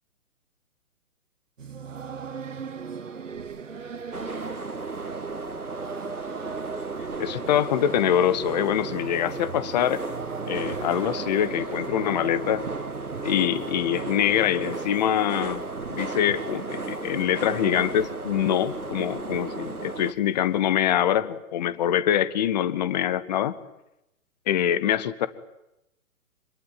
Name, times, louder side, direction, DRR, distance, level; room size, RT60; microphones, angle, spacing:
sound 1, 1.6-20.8, right 6 dB, 60° right, 1.8 m, -40 dB
sound 2, 4.1-20.1, right 3 dB, 90° right, 1.5 m, -34 dB
voice 1, 7.2-10.0 10.5-12.6 13.2-15.6 15.9-23.5 24.5-25.3, left 10 dB, 30° left, 15 dB, 1.2 m, -24 dB
26.0 x 21.5 x 9.2 m, 0.88 s
figure-of-eight pair, 130°, 43 cm